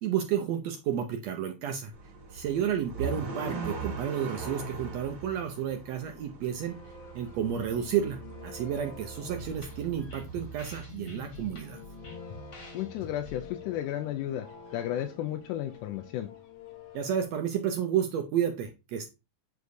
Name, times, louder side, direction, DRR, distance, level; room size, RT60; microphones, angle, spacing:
voice 1, 0.0-1.9 2.3-6.8 7.1-11.8 16.9-19.1, right 9 dB, 75° right, 5 dB, 1.6 m, -31 dB
E-type Jaguar car engine rev-twice mono, 1.9-10.9, right 4 dB, 35° right, 2.2 m, -40 dB
sound 1, 6.4-17.3, left 5 dB, 65° left, 1.3 m, -49 dB
sound 2, 9.1-14.8, left 2 dB, 35° left, 1.4 m, -47 dB
voice 2, 12.7-14.5 14.7-16.3, left 12 dB, 90° left, 6 dB, 2.1 m, -33 dB
8.1 x 4.8 x 2.6 m, 0.26 s
omnidirectional pair, 3.6 m